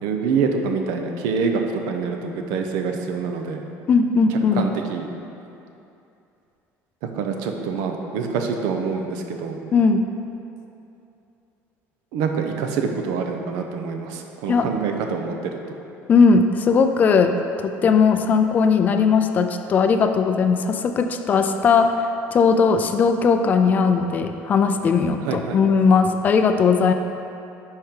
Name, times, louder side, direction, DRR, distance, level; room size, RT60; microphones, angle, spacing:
voice 1, 0.0-3.6 4.3-5.1 7.2-9.6 12.1-15.8 25.2-25.6, right 5 dB, 80° right, 4 dB, 0.7 m, -26 dB
voice 2, 3.9-4.7 9.7-10.1 14.5-14.7 16.1-17.3 17.6-22.0 22.3-26.9, left 5 dB, 30° left, 7 dB, 0.3 m, -18 dB
10.5 x 4.4 x 3.7 m, 2.7 s
cardioid pair, 170°, 6 cm